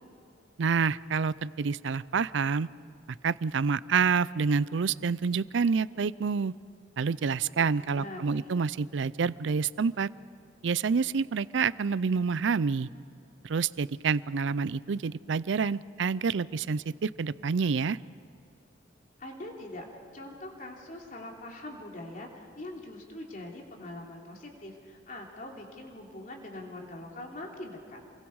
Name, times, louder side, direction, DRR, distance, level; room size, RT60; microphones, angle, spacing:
voice 1, 0.6-2.7 3.2-6.5 7.0-10.1 10.6-12.9 13.4-18.0, right 5 dB, 75° right, 19 dB, 0.5 m, -28 dB
voice 2, 7.6-8.6 19.2-19.9 20.1-28.0, left 1 dB, 45° left, 0 dB, 3.1 m, -43 dB
28.0 x 22.0 x 4.8 m, 2.5 s
head